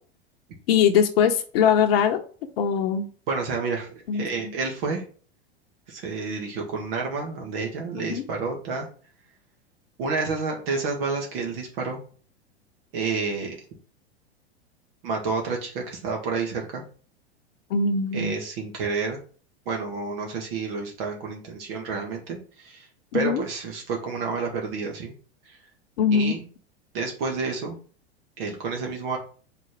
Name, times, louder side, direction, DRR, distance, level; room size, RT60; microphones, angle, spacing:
voice 1, 0.7-2.2 2.6-3.1 4.1-4.2 7.9-8.2 17.7-18.4 23.1-23.4 26.0-26.4, left 7 dB, 65° left, 4 dB, 0.9 m, -21 dB
voice 2, 3.3-5.0 5.9-8.9 10.0-12.0 12.9-13.5 15.0-16.8 18.1-19.2 19.7-22.9 23.1-25.1 25.5-25.6 26.1-26.4 26.9-27.8 28.4-29.2, right 4 dB, 60° right, 1 dB, 1.9 m, -29 dB
5.1 x 4.1 x 6.0 m, 0.42 s
hypercardioid pair, 95°, 33 cm